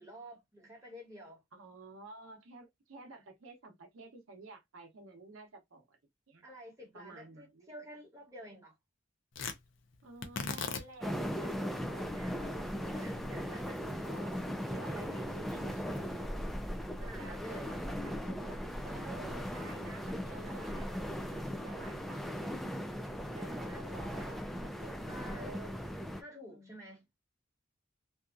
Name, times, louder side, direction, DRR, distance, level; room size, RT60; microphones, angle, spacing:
voice 1, 0.0-1.4 6.4-8.8 12.9-13.8 17.0-17.7 23.7-24.4 25.1-25.5 26.2-27.0, equal, 15° right, 1.2 m, -50 dB
voice 2, 1.5-6.0 6.3-6.4 6.9-7.7 10.0-14.4 14.7-16.7 17.0-22.4 23.3-25.8 26.5-26.8, right 3 dB, 90° right, 0.7 m, -52 dB
Tearing, 9.3-17.7, left 5 dB, 65° left, 0.5 m, -45 dB
sound 1, 11.0-26.2, equal, ahead, 0.3 m, -38 dB
2.8 x 2.3 x 2.4 m
head